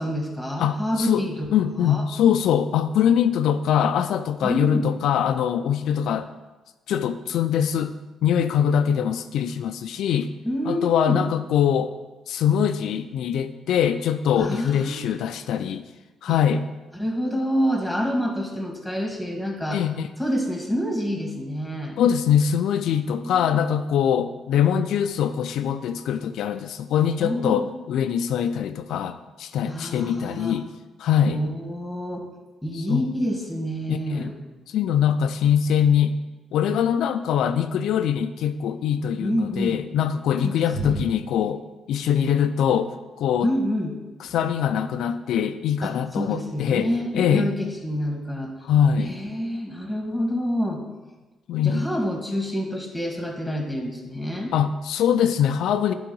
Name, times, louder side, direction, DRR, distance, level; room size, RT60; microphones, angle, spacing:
voice 1, 0.0-1.5 1.8-2.0 4.4-4.8 10.5-11.3 14.4-15.0 16.3-16.4 16.9-19.8 20.2-22.0 23.1-23.4 27.2-27.7 29.7-30.6 31.2-32.3 32.6-34.3 39.2-39.8 40.4-41.1 43.4-43.9 44.2-44.3 45.8-48.5 49.0-50.8 51.6-54.5, equal, ahead, 1 dB, 1.8 m, -27 dB
voice 2, 0.6-6.3 6.9-8.0 8.2-10.3 10.7-11.9 12.3-15.8 16.2-16.7 19.7-20.1 22.0-30.7 31.0-31.4 32.7-33.0 33.9-34.3 34.7-36.2 36.5-41.6 41.9-43.5 44.2-47.5 48.6-49.2 51.5-51.9 54.5-55.9, left 8 dB, 80° left, 9 dB, 0.4 m, -23 dB
9.7 x 3.9 x 5.4 m, 1.1 s
cardioid pair, 90°, 0 cm